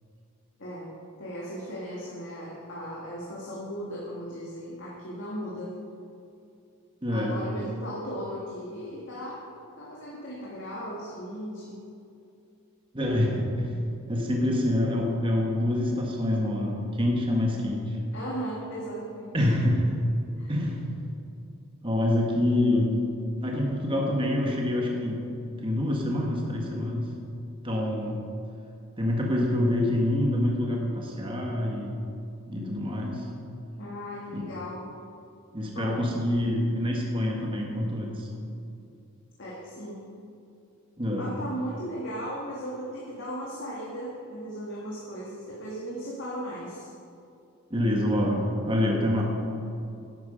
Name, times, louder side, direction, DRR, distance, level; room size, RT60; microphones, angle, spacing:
voice 1, 0.6-0.9 1.2-5.8 7.1-9.5 9.8-11.8 18.1-19.5 20.4-20.5 33.8-34.9 35.7-36.0 39.4-40.1 41.2-46.9, equal, 55° left, -5 dB, 1.9 m, -37 dB
voice 2, 7.0-7.4 12.9-13.7 14.1-18.0 19.3-19.9 20.5-21.0 21.8-23.0 23.4-25.3 25.6-27.1 27.6-28.2 29.0-31.9 32.5-33.3 34.3-34.5 35.5-38.3 41.0-41.3 47.7-49.2, left 1 dB, 25° right, -1 dB, 1.5 m, -26 dB
11.0 x 10.5 x 5.1 m, 2.6 s
head